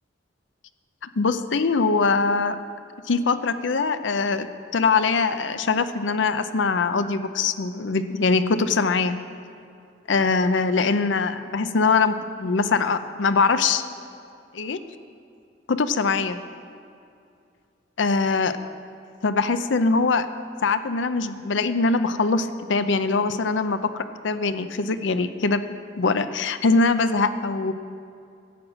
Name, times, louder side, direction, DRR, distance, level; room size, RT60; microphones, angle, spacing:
voice 1, 1.2-2.6 3.1-4.5 4.7-9.2 10.1-13.8 14.5-14.8 15.7-16.4 18.0-18.6 19.2-20.3 20.6-23.8 24.2-25.6 26.0-27.7, left 4 dB, 85° left, 11 dB, 0.6 m, -22 dB
11.0 x 7.9 x 7.4 m, 2.5 s
head